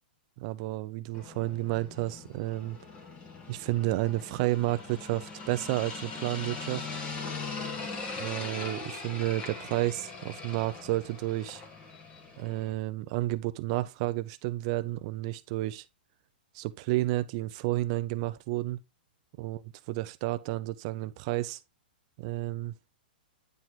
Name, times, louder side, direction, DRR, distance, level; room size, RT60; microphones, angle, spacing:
voice 1, 0.4-2.8 3.5-6.9 8.2-11.6 12.4-15.8 16.5-18.8 19.4-19.6 19.9-21.6 22.2-22.7, right 17 dB, 40° right, 0.7 m, -31 dB
sound 1, 1.1-12.7, left 4 dB, 25° left, 1.9 m, -41 dB
9.6 x 4.5 x 3.8 m
hypercardioid pair, 155°, 5 cm